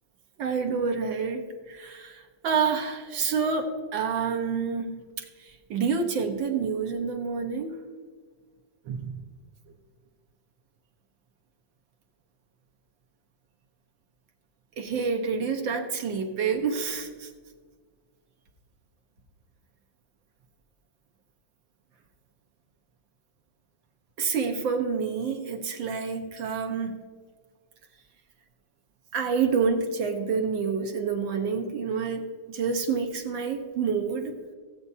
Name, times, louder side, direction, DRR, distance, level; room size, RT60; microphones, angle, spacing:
voice 1, 0.4-7.8 8.9-9.1 14.8-17.3 24.2-27.0 29.1-34.3, right 5 dB, 85° right, 4 dB, 2.0 m, -28 dB
16.0 x 8.0 x 2.8 m, 1.5 s
omnidirectional pair, 2.0 m